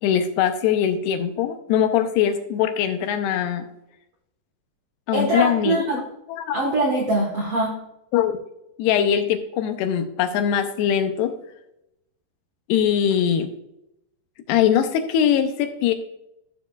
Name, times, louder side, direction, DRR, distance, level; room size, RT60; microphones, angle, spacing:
voice 1, 0.0-3.7 5.1-6.0 6.3-6.6 8.1-8.4 8.8-11.4 12.7-13.5 14.5-15.9, left 9 dB, 80° left, 8 dB, 2.5 m, -22 dB
voice 2, 5.1-6.0 6.5-7.7, right 1 dB, 75° right, -1 dB, 1.3 m, -22 dB
14.0 x 7.0 x 2.3 m, 0.84 s
omnidirectional pair, 5.0 m